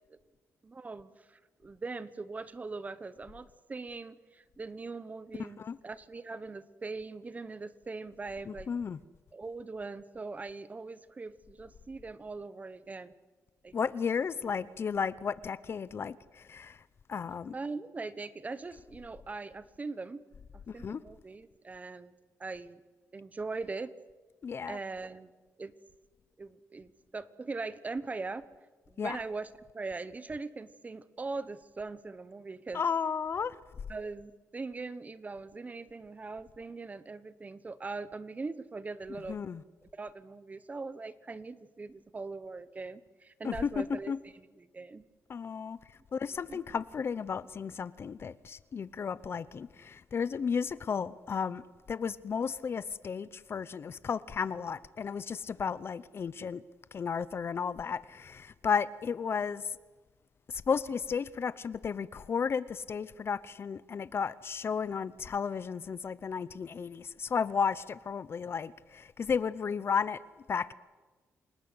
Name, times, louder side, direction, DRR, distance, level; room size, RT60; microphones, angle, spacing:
voice 1, 0.6-8.7 9.3-13.1 13.6-13.7 17.5-20.2 20.5-22.1 22.4-22.8 23.1-23.9 24.7-25.3 25.6-25.7 26.4-28.5 28.9-32.8 33.9-39.4 39.9-45.0 46.5-46.6, right 3 dB, 25° right, 15 dB, 1.2 m, -41 dB
voice 2, 8.5-9.0 13.7-16.8 17.1-17.5 20.7-21.0 24.4-24.8 29.0-29.2 32.7-33.6 39.3-39.6 43.4-44.2 45.3-45.8 46.1-51.6 51.9-56.6 56.9-59.6 60.5-70.2 70.5-70.7, left 6 dB, 45° left, 17 dB, 0.8 m, -33 dB
29.0 x 19.0 x 8.0 m, 1.3 s
cardioid pair, 105°, 6 cm